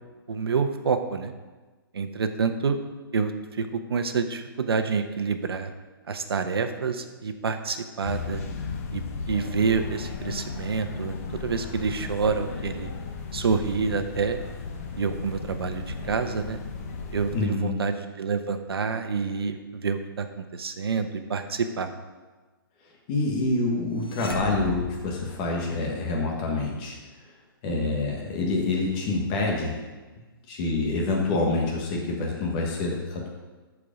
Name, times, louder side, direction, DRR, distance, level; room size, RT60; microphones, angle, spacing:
voice 1, 0.3-1.3 1.9-2.8 3.1-5.7 6.1-8.4 8.9-12.9 13.3-14.4 15.0-16.6 17.1-21.9, right 5 dB, 85° right, 8 dB, 1.0 m, -28 dB
sound 1, 8.0-17.5, left 5 dB, 35° left, 0.9 m, -35 dB
voice 2, 17.3-17.7 23.1-26.9 27.6-29.8 30.5-33.3, left 3 dB, 20° left, -1 dB, 1.3 m, -26 dB
sound 2, 24.1-26.1, left 3 dB, 75° left, 1.5 m, -34 dB
12.5 x 4.8 x 5.0 m, 1.3 s
hypercardioid pair, 170°, 12 cm